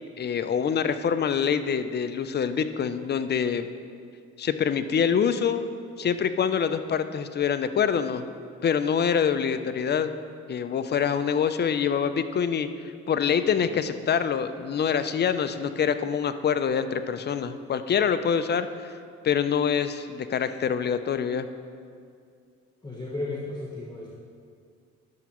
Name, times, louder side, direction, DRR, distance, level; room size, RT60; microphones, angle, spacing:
voice 1, 0.2-3.7 4.4-5.7 6.0-8.2 8.6-10.1 10.5-12.7 13.1-18.9 19.2-21.4, left 7 dB, 35° left, 11 dB, 0.4 m, -25 dB
voice 2, 22.8-24.1, left 2 dB, 15° left, -4 dB, 1.0 m, -34 dB
10.5 x 6.9 x 3.0 m, 2.2 s
cardioid pair, 90°, 30 cm